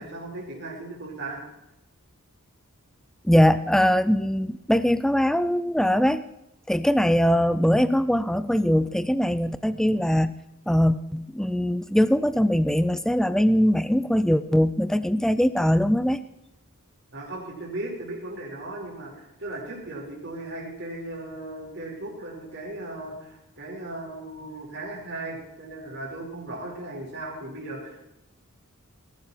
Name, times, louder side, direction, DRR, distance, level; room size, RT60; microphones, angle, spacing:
voice 1, 0.0-1.4 17.1-28.0, right 2 dB, 50° right, -3 dB, 5.3 m, -37 dB
voice 2, 3.2-6.2 6.7-10.4 10.7-16.2, equal, ahead, 14 dB, 0.4 m, -21 dB
19.5 x 12.0 x 4.5 m, 0.86 s
head